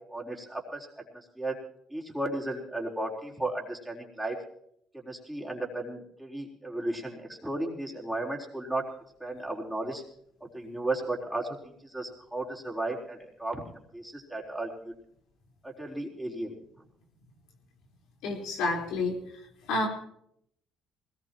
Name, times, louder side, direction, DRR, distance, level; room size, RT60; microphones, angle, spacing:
voice 1, 0.1-0.9 1.4-1.5 1.9-4.4 4.9-8.8 9.2-10.0 10.5-11.6 11.8-14.9 15.6-16.5, right 2 dB, 5° right, -2 dB, 4.1 m, -34 dB
voice 2, 18.2-19.1 19.7-19.9, left 2 dB, 80° left, 0 dB, 4.4 m, -29 dB
21.0 x 19.5 x 3.0 m, 0.71 s
supercardioid pair, 75°, 0 cm